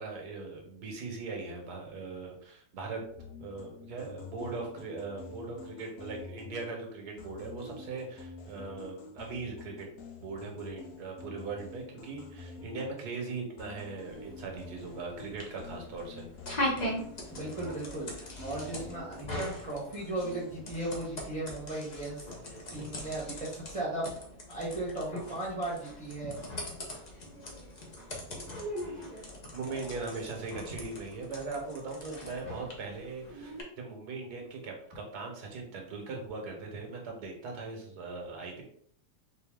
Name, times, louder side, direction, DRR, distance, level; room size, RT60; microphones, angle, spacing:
voice 1, 0.0-3.0 3.4-9.9 10.2-16.3 28.3-29.1 29.5-33.5 33.8-38.6, right 3 dB, 75° right, 1 dB, 1.6 m, -40 dB
sound 1, 3.0-6.9 7.2-13.3 13.6-19.7 20.0-20.6, left 4 dB, 65° left, 1.0 m, -48 dB
sound 2, 14.1-33.6, left 1 dB, 35° left, 0.7 m, -41 dB
voice 2, 17.3-24.1 24.5-26.3 29.7-29.8, right 2 dB, 25° right, -7 dB, 1.0 m, -36 dB
4.2 x 2.7 x 3.6 m, 0.63 s
omnidirectional pair, 1.7 m